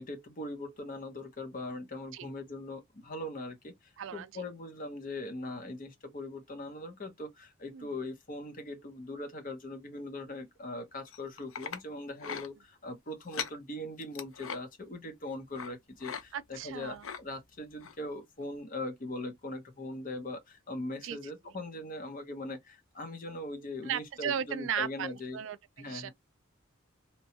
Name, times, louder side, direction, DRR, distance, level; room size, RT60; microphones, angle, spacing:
voice 1, 0.0-25.4 25.8-26.1, left 2 dB, 40° left, 0.8 m, -41 dB
voice 2, 4.0-4.4 7.7-7.9 16.3-17.0 21.0-21.2 23.9-26.1, right 8 dB, 70° right, 0.4 m, -36 dB
sound 1, 11.1-11.8 12.2-12.5 13.2-13.6 14.0-14.6 15.5-15.7 16.0-16.2 16.5-17.2 17.8-18.0 18.4-18.5, left 7 dB, 85° left, 0.5 m, -40 dB
2.9 x 2.3 x 2.7 m
head